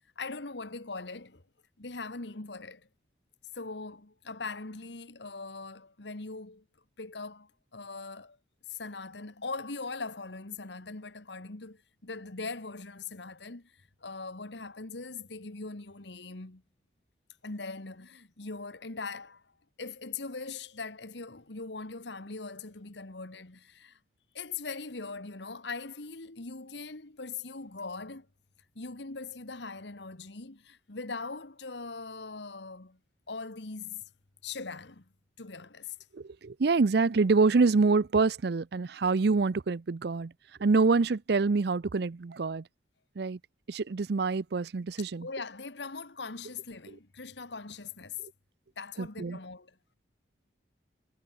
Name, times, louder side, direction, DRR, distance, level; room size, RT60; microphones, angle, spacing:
voice 1, 0.1-1.4 1.8-2.9 3.5-6.6 7.0-8.4 8.7-16.6 17.4-19.5 19.8-24.0 24.3-28.3 28.7-33.0 33.3-34.0 34.4-35.0 35.4-35.9 45.2-48.2 48.8-49.8, left 4 dB, 70° left, 1.6 m, -41 dB
voice 2, 36.1-40.3 40.6-42.6 43.2-43.4 43.7-45.3 49.0-49.4, right 4 dB, 60° right, 0.5 m, -26 dB
head